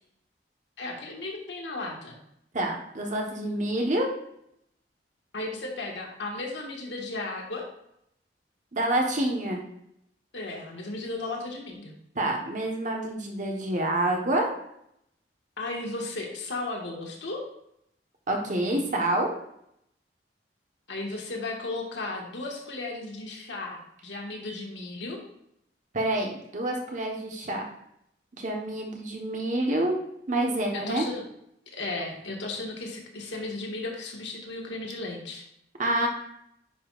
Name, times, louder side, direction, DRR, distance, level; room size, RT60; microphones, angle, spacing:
voice 1, 0.8-2.2 5.3-7.7 10.3-11.9 15.6-17.4 20.9-25.2 30.7-31.2 31.7-35.4, left 2 dB, 85° left, 0 dB, 1.6 m, -35 dB
voice 2, 2.5-4.1 8.7-9.6 12.1-14.5 18.3-19.3 25.9-27.6 28.3-30.0 30.3-31.0 35.8-36.1, right 1 dB, 45° right, 1 dB, 1.2 m, -27 dB
10.5 x 5.5 x 2.5 m, 0.76 s
head